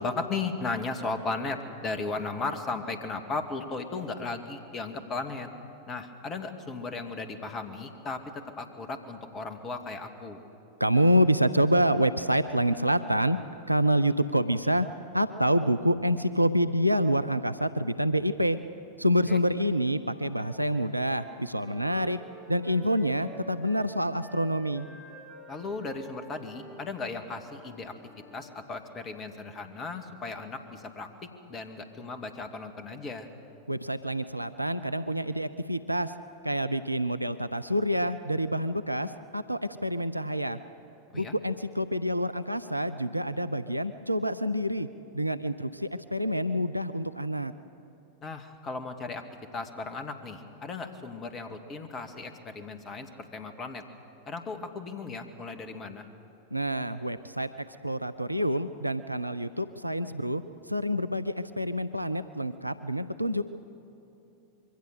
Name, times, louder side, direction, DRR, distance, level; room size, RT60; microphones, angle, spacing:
voice 1, 0.0-5.5 5.9-10.4 19.3-19.4 25.5-27.9 28.3-33.3 41.1-41.4 48.2-49.2 49.5-53.8 54.3-56.0, left 3 dB, 25° left, 7 dB, 2.0 m, -36 dB
voice 2, 10.8-13.4 13.7-14.9 15.1-18.6 19.0-22.2 22.5-24.9 33.7-36.1 36.4-40.6 41.1-44.9 45.1-47.5 56.5-63.4, equal, 90° right, 12 dB, 0.6 m, -27 dB
Wind instrument woodwind instrument, 20.0-23.9 24.2-28.5, right 1 dB, ahead, 7.0 m, -50 dB
25.5 x 23.0 x 6.8 m, 3.0 s
figure-of-eight pair, 90°, 0 cm